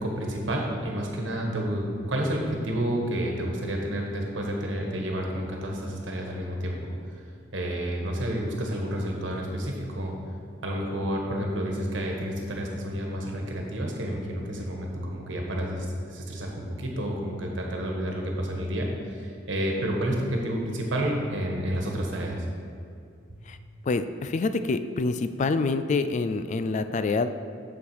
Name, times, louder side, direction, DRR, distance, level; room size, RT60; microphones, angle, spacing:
voice 1, 0.0-6.9 7.5-10.1 10.6-22.4 23.3-23.4, equal, 70° right, 0 dB, 1.4 m, -30 dB
voice 2, 23.8-27.3, left 3 dB, 40° left, 11 dB, 0.3 m, -26 dB
7.1 x 6.9 x 4.8 m, 2.4 s
head